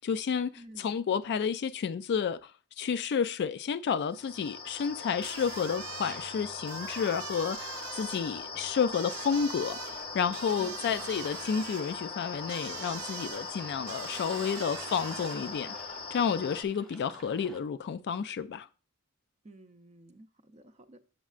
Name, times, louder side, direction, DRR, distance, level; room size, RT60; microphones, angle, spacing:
voice 1, 0.0-2.5 2.8-15.7 16.1-18.7, left 6 dB, 50° left, 0.3 m, -31 dB
voice 2, 0.6-1.0 10.6-11.1 19.4-21.1, right 1 dB, 30° right, 0.6 m, -52 dB
sound 1, 4.1-16.6, left 4 dB, 25° left, 0.7 m, -41 dB
sound 2, 5.2-15.7, right 11 dB, 90° right, 0.4 m, -44 dB
sound 3, 11.0-17.6, right 1 dB, ahead, 1.0 m, -51 dB
8.1 x 7.3 x 2.4 m
head